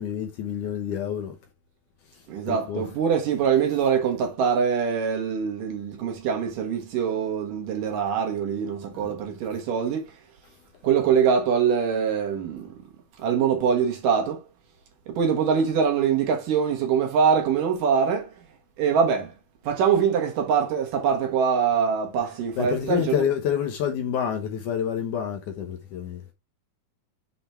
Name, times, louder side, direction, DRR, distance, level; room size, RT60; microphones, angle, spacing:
voice 1, 0.0-1.4 2.5-2.8 8.9-9.1 22.6-26.2, left 8 dB, 70° left, 2.1 m, -28 dB
voice 2, 2.3-10.1 10.8-12.7 13.2-14.4 15.1-18.3 18.8-19.3 19.6-23.1, right 7 dB, 65° right, 2.8 m, -23 dB
6.8 x 4.0 x 4.3 m
omnidirectional pair, 4.3 m